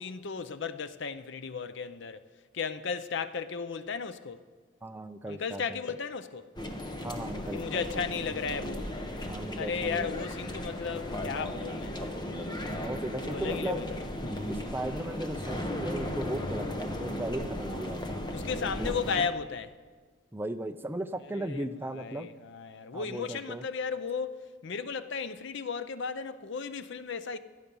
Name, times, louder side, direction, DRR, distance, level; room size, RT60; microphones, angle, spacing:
voice 1, 0.0-2.2 2.5-4.4 5.3-6.5 7.5-8.9 9.5-12.0 13.2-13.9 18.3-19.7 21.3-27.4, left 5 dB, 55° left, 0.5 m, -35 dB
voice 2, 4.8-5.8 7.0-7.8 9.3-10.2 12.7-13.9 14.5-18.2 18.8-18.9 20.3-22.3 22.9-23.6, right 1 dB, 10° right, 0.4 m, -37 dB
sound 1, 6.6-19.3, left 1 dB, 20° left, 1.0 m, -36 dB
17.0 x 12.5 x 5.4 m
head